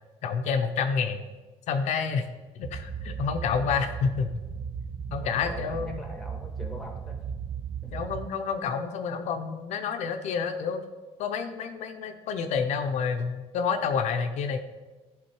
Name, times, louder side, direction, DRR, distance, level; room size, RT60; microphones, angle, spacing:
voice 1, 0.2-1.2 1.7-2.3 2.6-4.3 5.1-6.0 7.9-10.8 11.2-14.6, left 6 dB, 75° left, 6 dB, 0.6 m, -29 dB
sound 1, 2.6-8.3, right 7 dB, 30° right, 0.5 m, -36 dB
voice 2, 5.2-7.2 7.8-7.9, left 1 dB, 5° left, 3 dB, 1.2 m, -43 dB
10.5 x 3.7 x 4.6 m, 1.2 s
cardioid pair, 140°, 12 cm